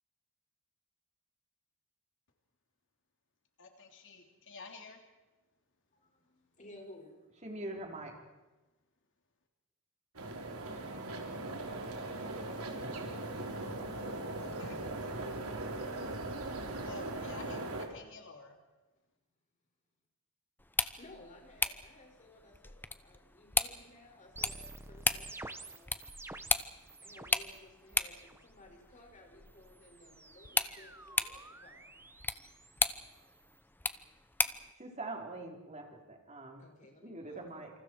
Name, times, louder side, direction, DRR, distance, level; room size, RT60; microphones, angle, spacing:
voice 1, 3.6-5.0 14.4-15.1 16.8-18.6, left 3 dB, 60° left, 4 dB, 3.2 m, -50 dB
voice 2, 5.9-7.4 21.0-26.0 27.0-31.9 36.6-37.7, left 1 dB, 35° left, 1 dB, 6.3 m, -57 dB
voice 3, 7.4-8.1 34.8-36.6 37.0-37.7, right 2 dB, 30° right, 2 dB, 4.2 m, -43 dB
sound 1, 10.2-17.9, right 2 dB, 85° right, 3.8 m, -39 dB
sound 2, 20.6-34.7, left 3 dB, 10° left, 0.9 m, -37 dB
sound 3, 24.4-27.6 27.9-28.4 29.5-33.6, right 2 dB, 10° right, 1.2 m, -51 dB
28.0 x 27.0 x 4.8 m, 1.1 s
head